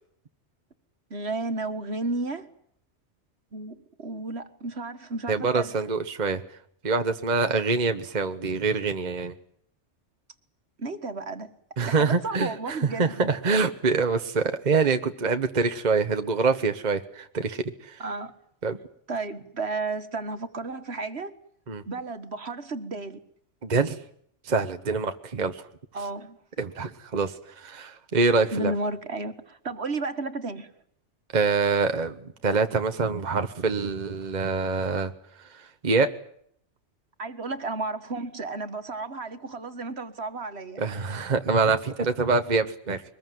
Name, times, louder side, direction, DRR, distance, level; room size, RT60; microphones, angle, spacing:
voice 1, 1.1-2.5 3.5-5.7 10.8-11.5 11.8-13.3 18.0-18.3 19.1-21.3 21.9-23.2 25.9-26.4 28.5-30.7 37.2-40.8, right 3 dB, 60° right, 2.0 m, -33 dB
voice 2, 5.3-6.4 6.8-9.3 11.8-18.0 18.6-18.8 21.7-21.8 23.6-24.0 24.4-25.6 26.6-28.7 31.3-35.1 35.4-36.1 40.8-43.0, right 4 dB, 40° right, 1.2 m, -25 dB
23.5 x 20.5 x 9.3 m
omnidirectional pair, 1.2 m